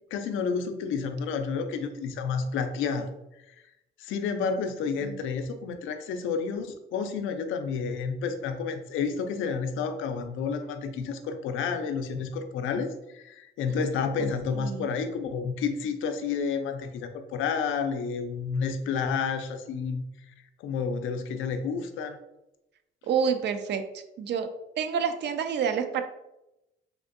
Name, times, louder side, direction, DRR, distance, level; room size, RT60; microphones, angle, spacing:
voice 1, 0.0-3.1 4.0-20.0 20.6-22.2, left 5 dB, 85° left, 7 dB, 0.4 m, -30 dB
voice 2, 14.2-14.9 23.1-24.5 24.8-26.0, right 7 dB, 60° right, 8 dB, 0.4 m, -29 dB
3.5 x 2.6 x 2.5 m, 0.91 s
cardioid pair, 90°, 20 cm